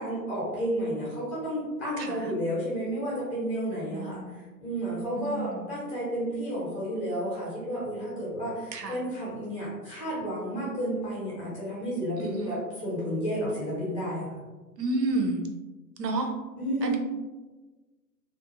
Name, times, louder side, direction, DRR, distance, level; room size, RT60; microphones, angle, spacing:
voice 1, 0.0-14.4 16.6-17.0, equal, 20° left, -6 dB, 0.6 m, -31 dB
voice 2, 3.9-4.3 5.2-5.5 8.7-8.9 12.2-12.3 14.8-15.4 16.0-16.3 16.8-17.0, right 2 dB, 80° right, 3 dB, 0.6 m, -29 dB
2.4 x 2.0 x 2.9 m, 1.2 s
figure-of-eight pair, 120°, 49 cm